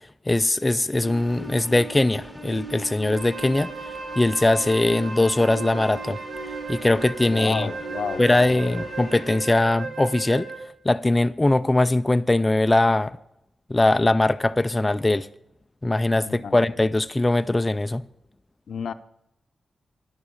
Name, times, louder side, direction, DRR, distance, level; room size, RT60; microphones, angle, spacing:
voice 1, 0.3-3.7 4.2-6.2 6.7-7.7 8.2-10.5 10.9-13.2 13.7-15.3 15.8-18.0, left 2 dB, 20° left, 0.3 m, -21 dB
sound 1, 1.0-9.5, right 2 dB, 15° right, 2.0 m, -40 dB
Wind instrument woodwind instrument, 3.1-10.8, right 4 dB, 60° right, 1.4 m, -35 dB
voice 2, 7.2-8.9 16.2-16.6 18.7-18.9, left 6 dB, 70° left, 0.6 m, -32 dB
10.5 x 6.9 x 8.6 m
cardioid pair, 95°, 0 cm